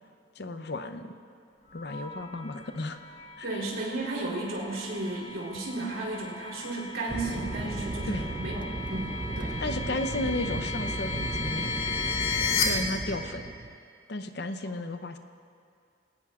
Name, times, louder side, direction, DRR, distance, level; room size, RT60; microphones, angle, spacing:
voice 1, 0.4-1.1 1.7-3.0 3.4-3.6 8.1-8.2 9.6-11.8 12.6-13.4 14.1-15.2, left 2 dB, 55° left, 8 dB, 0.7 m, -34 dB
sound 1, 1.7-12.6, left 5 dB, 85° left, 1.9 m, -36 dB
voice 2, 3.4-9.6, right 2 dB, 90° right, -4 dB, 3.5 m, -34 dB
Fixed-wing aircraft airplane, 7.1-13.8, right 2 dB, 25° right, 0.4 m, -35 dB
19.5 x 17.5 x 2.5 m, 2.3 s
head